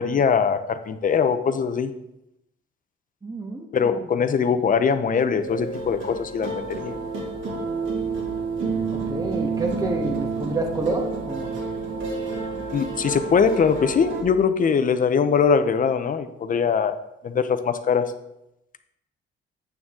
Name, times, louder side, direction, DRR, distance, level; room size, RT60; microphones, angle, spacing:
voice 1, 0.0-1.9 3.7-6.9 12.7-17.0 17.2-18.1, left 6 dB, 45° left, 10 dB, 0.7 m, -22 dB
voice 2, 3.2-4.4 8.9-11.5, right 2 dB, 20° right, 2 dB, 1.3 m, -29 dB
sound 1, 5.4-14.2, right 4 dB, 75° right, 2.4 m, -29 dB
8.7 x 6.3 x 3.7 m, 0.85 s
cardioid pair, 90°, 20 cm